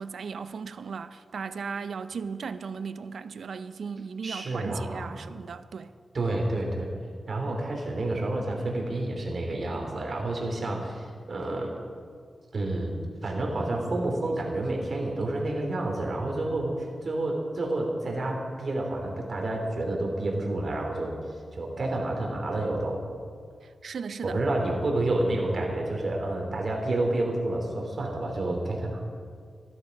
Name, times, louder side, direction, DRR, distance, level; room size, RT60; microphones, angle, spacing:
voice 1, 0.0-5.9 23.6-24.4, right 5 dB, 80° right, 0.5 m, -36 dB
voice 2, 4.2-5.1 6.1-6.9 7.3-11.7 12.5-21.1 21.5-23.0 24.2-29.0, right 2 dB, 55° right, 3.0 m, -29 dB
14.5 x 11.5 x 5.3 m
wide cardioid pair, 90°, 0 cm